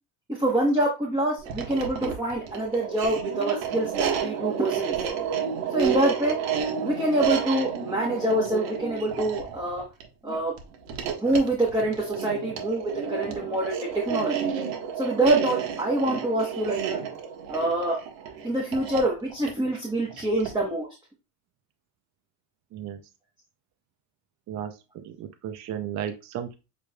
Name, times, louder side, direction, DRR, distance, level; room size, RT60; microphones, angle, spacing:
voice 1, 0.3-5.0 5.7-6.4 6.8-9.8 10.2-10.5 11.2-13.8 14.1-14.5 15.0-17.0 17.5-18.0 18.4-20.9, right 1 dB, 10° right, -2 dB, 1.1 m, -26 dB
sound 1, 1.4-20.7, right 8 dB, 75° right, 1.4 m, -31 dB
voice 2, 24.5-26.5, right 9 dB, 40° right, 8 dB, 0.6 m, -34 dB
6.8 x 3.2 x 2.3 m, 0.29 s
cardioid pair, 130°, 46 cm